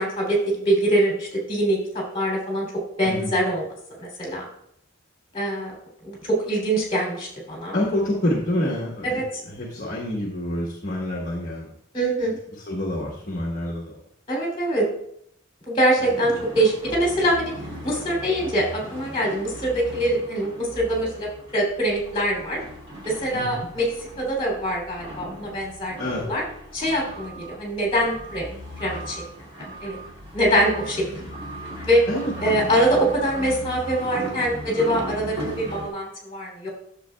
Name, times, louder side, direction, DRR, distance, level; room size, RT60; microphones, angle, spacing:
voice 1, 0.0-2.7 3.0-3.7 4.0-4.4 5.3-5.7 6.0-7.7 9.0-9.4 11.9-12.4 14.3-14.8 15.7-17.5 17.8-22.6 23.0-26.4 26.7-28.5 28.8-29.2 29.8-30.0 30.3-31.0 31.9-32.1 32.4-36.7, right 1 dB, 25° left, -2 dB, 2.9 m, -24 dB
voice 2, 7.7-9.2 9.5-11.7 12.7-14.0 23.3-23.7 26.0-26.2 32.1-32.3, left 1 dB, 40° left, -3 dB, 1.2 m, -27 dB
sound 1, 16.0-35.9, equal, 30° right, 2.4 m, -37 dB
10.0 x 7.0 x 2.3 m, 0.70 s
head